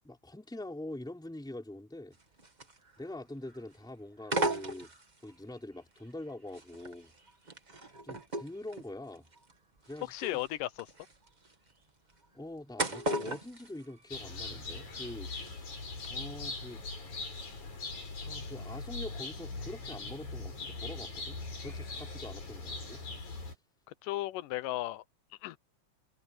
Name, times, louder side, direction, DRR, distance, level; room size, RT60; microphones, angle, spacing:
voice 1, 0.0-2.2 3.0-4.9 5.2-7.1 8.0-9.3 9.8-10.4 12.3-16.8 18.2-23.0, left 1 dB, ahead, 3.7 m, -44 dB
sound 1, 2.1-3.2 3.4-3.8 4.2-5.4 6.0-14.6 14.9-15.5 15.9-16.1, right 2 dB, 30° right, 0.8 m, -38 dB
voice 2, 10.1-10.9 24.0-25.0 25.4-25.6, left 16 dB, 90° left, 2.4 m, -35 dB
sound 2, 14.1-23.5, left 3 dB, 60° left, 8.0 m, -41 dB
omnidirectional pair, 3.7 m